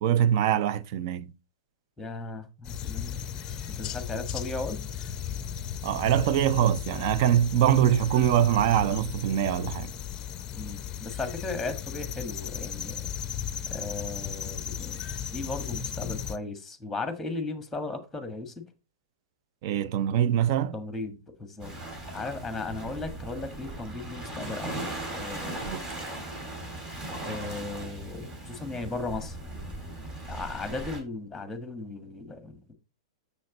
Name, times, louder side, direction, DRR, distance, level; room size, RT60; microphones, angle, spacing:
voice 1, 0.0-1.3 5.8-9.9 19.6-20.7 25.6-25.8, right 10 dB, 45° right, 0.6 m, -23 dB
voice 2, 2.0-3.2 3.7-4.8 10.5-13.1 13.7-18.6 20.7-21.7 22.1-25.9 27.2-29.4 30.3-32.7, left 3 dB, 5° left, 1.5 m, -36 dB
sound 1, 2.6-16.4, left 9 dB, 30° left, 0.6 m, -36 dB
Waves surf, 21.6-31.0, right 1 dB, 25° right, 2.7 m, -38 dB
7.0 x 6.3 x 4.1 m
figure-of-eight pair, 105°, 3 cm